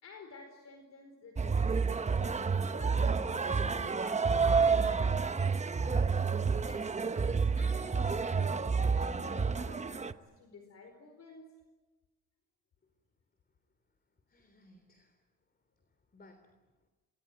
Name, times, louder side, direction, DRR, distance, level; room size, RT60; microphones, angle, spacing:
voice 1, 0.0-5.3 6.6-11.5, left 3 dB, 60° left, 5 dB, 4.7 m, -53 dB
sound 1, 1.4-10.1, right 5 dB, 25° right, 1.0 m, -29 dB
voice 2, 14.3-15.2 15.9-16.9, left 1 dB, 30° left, 7 dB, 3.5 m, -62 dB
29.0 x 20.5 x 7.9 m, 1.2 s
cardioid pair, 90°, 30 cm